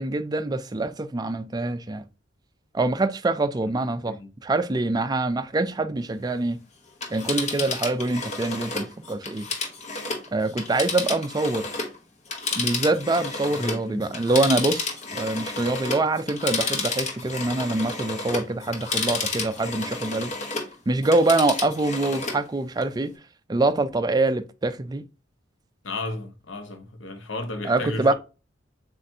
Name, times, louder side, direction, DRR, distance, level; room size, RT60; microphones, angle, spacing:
voice 1, 0.0-2.0 2.7-4.2 4.4-6.6 7.1-9.5 10.3-11.7 12.6-14.9 15.1-20.3 20.9-23.1 23.5-25.1 27.6-28.1, right 2 dB, 20° right, 0.4 m, -24 dB
Telephone, 6.9-12.0 12.3-20.7 21.0-22.4 22.8-22.9, left 4 dB, 40° left, 1.0 m, -31 dB
voice 2, 13.6-14.1 25.8-28.1, left 2 dB, 90° left, 0.9 m, -33 dB
7.3 x 2.5 x 2.6 m
head